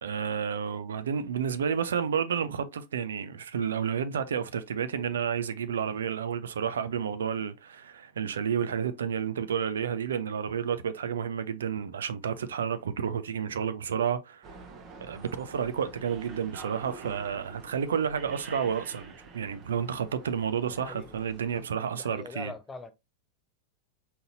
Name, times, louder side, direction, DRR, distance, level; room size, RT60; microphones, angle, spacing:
voice 1, 0.0-14.6 15.0-22.5, right 7 dB, 65° right, 0.5 m, -31 dB
sound 1, 14.4-21.6, right 4 dB, 30° right, 0.9 m, -48 dB
voice 2, 20.7-21.2 22.0-22.9, left 4 dB, 15° left, 0.6 m, -42 dB
4.3 x 3.9 x 2.6 m
figure-of-eight pair, 90°, 0 cm